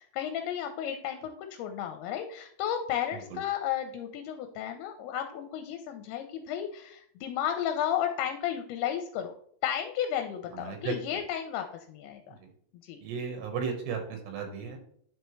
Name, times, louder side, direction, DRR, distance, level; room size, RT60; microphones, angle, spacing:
voice 1, 0.0-9.3 9.6-12.4 12.8-13.0, left 10 dB, 80° left, 6 dB, 2.5 m, -33 dB
voice 2, 10.5-10.9 12.3-12.5 13.0-14.8, right 6 dB, 85° right, 4 dB, 3.4 m, -35 dB
9.8 x 4.5 x 3.1 m, 0.62 s
omnidirectional pair, 4.8 m